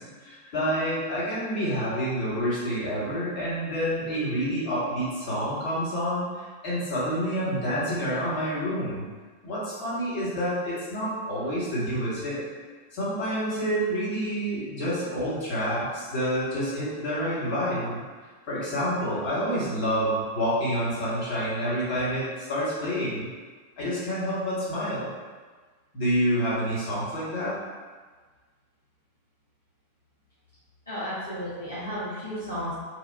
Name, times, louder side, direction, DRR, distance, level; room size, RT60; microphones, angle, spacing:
voice 1, 0.0-9.0 9.4-12.4 12.9-18.0 18.5-23.3 23.8-25.1 25.9-27.6, equal, 50° left, -9 dB, 1.3 m, -28 dB
voice 2, 30.9-32.7, equal, 80° left, -11 dB, 0.7 m, -33 dB
3.3 x 2.3 x 2.4 m, 1.4 s
figure-of-eight pair, 90°, 0 cm